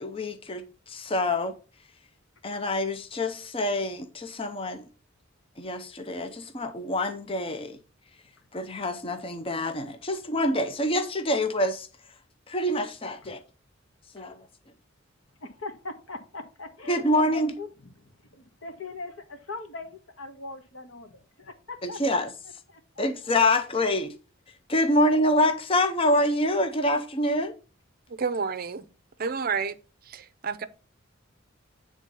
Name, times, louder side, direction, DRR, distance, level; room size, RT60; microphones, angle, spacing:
voice 1, 0.0-1.5 2.4-4.8 5.6-7.8 8.5-11.9 12.5-13.4 14.1-14.4 16.9-17.5 21.8-22.3 23.0-24.1 24.7-27.5, left 1 dB, 25° left, 0.7 m, -26 dB
voice 2, 15.4-22.3 22.7-23.1, left 3 dB, 75° left, 1.6 m, -41 dB
voice 3, 28.1-28.8 29.2-29.7 30.1-30.6, right 5 dB, 45° right, 0.6 m, -30 dB
9.2 x 3.6 x 5.3 m
head